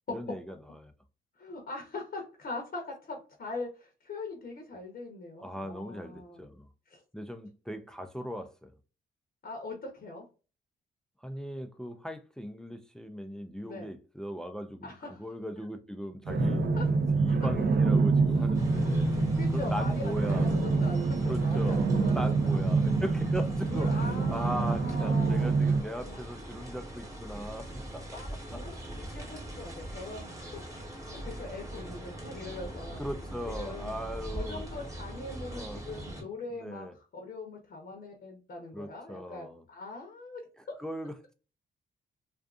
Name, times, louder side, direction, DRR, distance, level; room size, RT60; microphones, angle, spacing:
voice 1, 0.1-0.9 5.4-6.7 7.1-8.7 11.2-16.6 17.1-19.1 19.5-20.5 21.2-28.0 28.5-28.6 33.0-34.6 35.5-35.8 36.5-36.9 38.7-39.6 40.8-41.3, equal, 5° left, 0.3 m, -39 dB
voice 2, 1.4-6.4 6.9-7.0 9.4-10.2 13.7-13.9 14.8-15.2 15.6-15.7 16.8-16.9 18.3-18.5 19.1-23.0 23.7-25.5 26.0-26.2 28.1-30.3 31.1-33.0 33.5-33.9 34.3-40.4, left 3 dB, 50° left, 0.7 m, -42 dB
sound 1, 16.3-25.8, right 3 dB, 55° right, 0.6 m, -26 dB
sound 2, 18.5-36.2, right 1 dB, 15° right, 1.0 m, -42 dB
2.5 x 2.4 x 2.3 m
cardioid pair, 70°, 20 cm